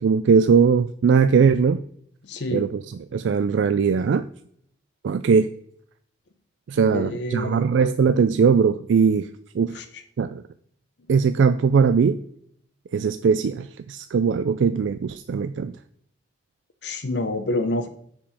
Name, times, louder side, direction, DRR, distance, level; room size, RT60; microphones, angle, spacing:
voice 1, 0.0-1.8 2.5-2.8 3.1-4.2 5.0-5.5 6.7-9.3 9.5-9.8 10.2-10.4 11.1-12.2 12.9-15.7, right 6 dB, 80° right, 11 dB, 0.3 m, -20 dB
voice 2, 2.2-2.7 6.8-7.6 9.7-10.0 16.8-17.9, left 2 dB, 65° left, 9 dB, 0.7 m, -28 dB
7.1 x 5.2 x 5.6 m, 0.66 s
head